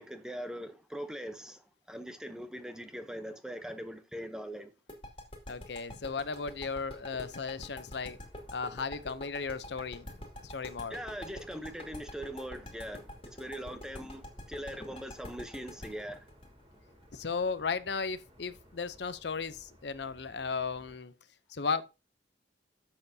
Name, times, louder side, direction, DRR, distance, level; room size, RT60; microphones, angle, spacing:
voice 1, 0.0-4.7 10.9-16.3, equal, 5° right, 0.8 m, -41 dB
sound 1, 4.9-17.6, left 1 dB, 30° left, 2.4 m, -45 dB
voice 2, 5.5-8.2 8.5-10.1 10.4-11.0 17.1-21.1 21.5-21.8, left 5 dB, 65° left, 0.7 m, -35 dB
sound 2, 6.2-21.0, equal, 30° right, 2.8 m, -59 dB
12.0 x 7.6 x 2.8 m
head